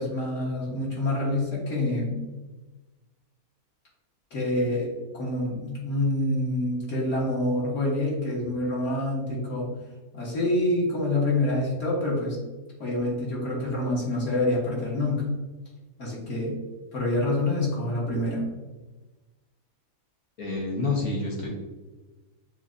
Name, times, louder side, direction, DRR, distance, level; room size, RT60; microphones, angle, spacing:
voice 1, 0.0-2.2 4.3-9.7 10.1-12.4 12.8-15.3 16.0-16.6 16.9-18.5, left 1 dB, 60° left, -5 dB, 1.6 m, -27 dB
voice 2, 20.4-21.5, left 3 dB, 75° left, -3 dB, 1.7 m, -28 dB
6.7 x 2.8 x 2.6 m, 1.2 s
omnidirectional pair, 1.5 m